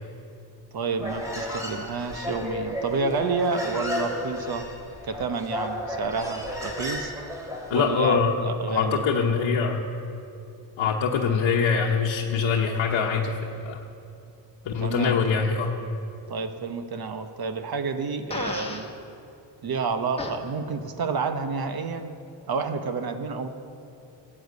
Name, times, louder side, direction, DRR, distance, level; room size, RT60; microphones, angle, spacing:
voice 1, 0.7-4.7 5.0-7.1 7.7-9.1 14.8-15.2 16.3-18.9 19.6-22.1 22.5-23.5, right 4 dB, 50° right, 8 dB, 1.0 m, -29 dB
Human voice, 1.0-8.0, left 1 dB, 5° right, 2.5 m, -33 dB
voice 2, 7.7-8.3 8.7-9.8 10.8-13.8 14.6-15.7, left 6 dB, 75° left, -1 dB, 1.1 m, -24 dB
Fart, 18.3-18.9 20.2-20.4, left 2 dB, 15° left, 1.2 m, -32 dB
15.5 x 8.7 x 8.2 m, 2.7 s
wide cardioid pair, 140°, 46 cm